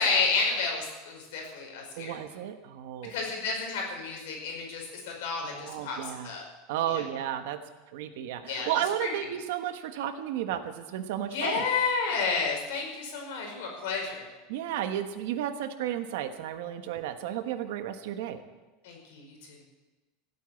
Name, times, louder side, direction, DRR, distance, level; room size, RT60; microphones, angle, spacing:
voice 1, 0.0-2.2 3.1-6.0 6.2-6.4 6.9-7.0 8.4-8.7 9.0-9.1 11.3-14.3 18.8-19.6, left 4 dB, 65° left, 0 dB, 5.2 m, -31 dB
voice 2, 2.0-3.1 5.4-6.3 6.7-7.6 7.9-11.6 14.5-18.4, right 11 dB, 60° right, 8 dB, 1.2 m, -33 dB
16.0 x 8.4 x 8.3 m, 1.2 s
supercardioid pair, 180°, 0 cm